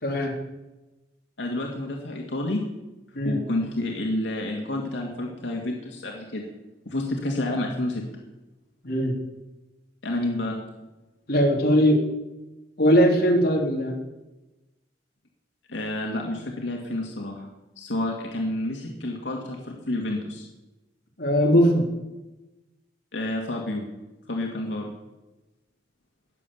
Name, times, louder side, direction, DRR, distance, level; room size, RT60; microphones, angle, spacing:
voice 1, 0.0-0.3 3.1-3.4 8.8-9.1 11.3-12.0 12.8-14.0 21.2-21.9, equal, 55° left, -1 dB, 3.4 m, -20 dB
voice 2, 1.4-2.6 3.2-6.5 6.9-8.0 10.0-10.6 15.7-17.5 17.8-20.5 23.1-23.9 24.3-24.9, left 1 dB, 85° left, 0 dB, 2.2 m, -29 dB
20.0 x 7.5 x 7.0 m, 1.1 s
head